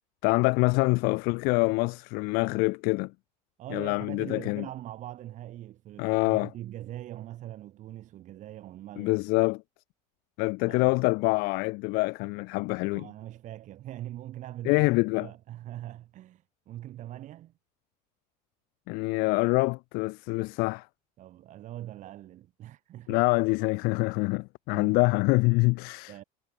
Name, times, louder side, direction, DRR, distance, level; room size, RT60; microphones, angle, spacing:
voice 1, 0.2-3.1 3.7-4.7 6.0-6.5 9.0-9.6 10.4-13.1 14.6-15.3 18.9-20.9 23.1-26.1, left 27 dB, 55° left, 0.4 m, -25 dB
voice 2, 3.6-9.2 10.7-10.9 12.8-17.5 21.2-23.2 24.7-25.0 26.1-26.2, right 13 dB, 40° right, 5.1 m, -42 dB
cardioid pair, 165°, 19 cm